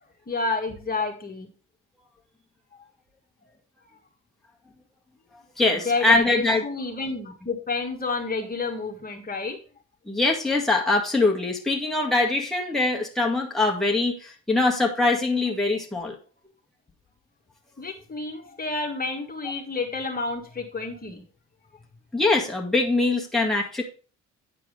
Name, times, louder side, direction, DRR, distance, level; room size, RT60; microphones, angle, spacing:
voice 1, 0.3-1.5 5.7-9.6 17.8-21.2, left 3 dB, 30° left, 2 dB, 1.7 m, -29 dB
voice 2, 5.6-6.6 10.1-16.2 22.1-23.8, left 2 dB, ahead, -1 dB, 1.8 m, -23 dB
9.4 x 4.6 x 4.9 m, 0.36 s
cardioid pair, 90°, 30 cm